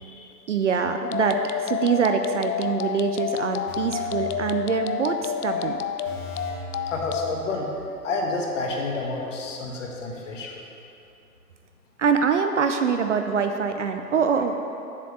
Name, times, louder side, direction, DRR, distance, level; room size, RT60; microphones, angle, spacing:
voice 1, 0.0-5.8 12.0-14.6, right 6 dB, 50° right, 6 dB, 0.5 m, -24 dB
sound 1, 1.0-7.3, left 8 dB, 65° left, 0.6 m, -29 dB
sound 2, 3.7-5.2 5.5-5.6 6.1-8.0 8.3-8.4, equal, 30° left, 1.7 m, -40 dB
voice 2, 6.4-7.7 8.0-10.6, left 3 dB, 45° left, 0 dB, 1.4 m, -30 dB
7.5 x 5.0 x 6.9 m, 2.8 s
figure-of-eight pair, 130°, 50 cm